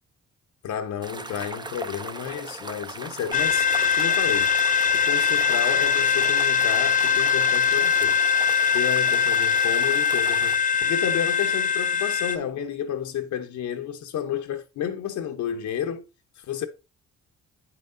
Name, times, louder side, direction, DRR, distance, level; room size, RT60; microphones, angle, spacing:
voice 1, 0.6-4.5 4.9-8.2 8.7-16.0 16.4-16.7, left 9 dB, 70° left, 0.9 m, -31 dB
sound 1, 1.0-10.6, right 3 dB, 15° right, 0.6 m, -38 dB
sound 2, 3.3-12.4, left 7 dB, 25° left, 0.7 m, -22 dB
8.5 x 5.8 x 2.6 m
cardioid pair, 90°, 30 cm